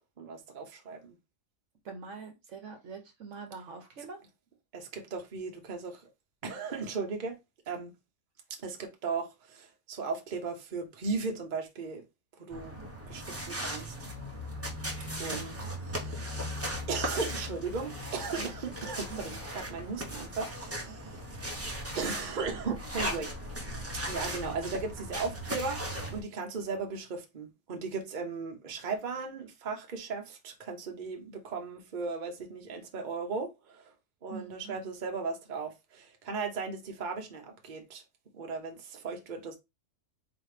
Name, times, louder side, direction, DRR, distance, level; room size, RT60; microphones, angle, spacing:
voice 1, 0.2-1.1 4.7-6.1 6.4-7.4 7.7-7.9 8.5-12.0 12.4-12.8 13.1-13.9 15.2-16.5 16.9-21.2 21.9-23.4 24.0-33.9 34.2-38.0 38.3-39.6, right 4 dB, 40° right, 0.9 m, -37 dB
voice 2, 1.8-4.2 18.3-18.7 19.1-19.4 34.3-34.8, right 5 dB, 60° right, 1.1 m, -44 dB
sound 1, 12.5-26.2, equal, 10° right, 0.8 m, -37 dB
4.1 x 3.0 x 3.3 m
omnidirectional pair, 1.5 m